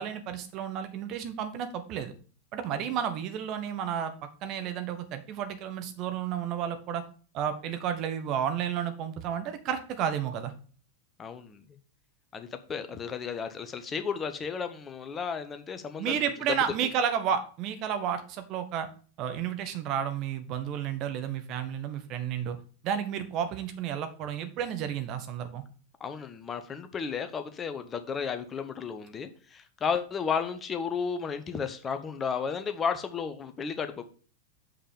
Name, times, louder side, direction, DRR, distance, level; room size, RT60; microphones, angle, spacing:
voice 1, 0.0-2.1 2.5-4.1 4.4-7.0 7.3-10.5 16.0-18.9 19.2-22.6 22.8-25.6, right 8 dB, 40° right, 8 dB, 1.2 m, -31 dB
voice 2, 11.2-11.6 12.3-16.2 26.0-34.0, left 6 dB, 20° left, 9 dB, 0.9 m, -33 dB
6.7 x 5.6 x 5.3 m, 0.41 s
figure-of-eight pair, 90°, 0 cm